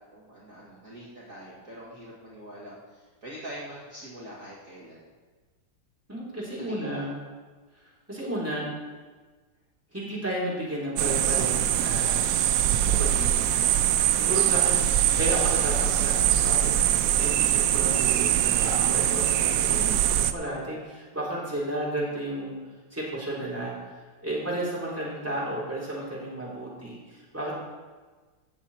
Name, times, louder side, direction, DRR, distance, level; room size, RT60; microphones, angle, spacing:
voice 1, 0.1-5.1 6.7-7.0 23.8-23.9, equal, 45° right, -7 dB, 2.4 m, -44 dB
voice 2, 6.1-7.1 8.1-8.7 9.9-12.2 13.0-13.6 14.2-22.6 22.9-23.8 24.2-27.5, right 1 dB, 5° right, -7 dB, 3.7 m, -33 dB
sound 1, 11.0-20.3, right 11 dB, 85° right, 1.3 m, -23 dB
15.5 x 7.2 x 4.3 m, 1.4 s
omnidirectional pair, 2.0 m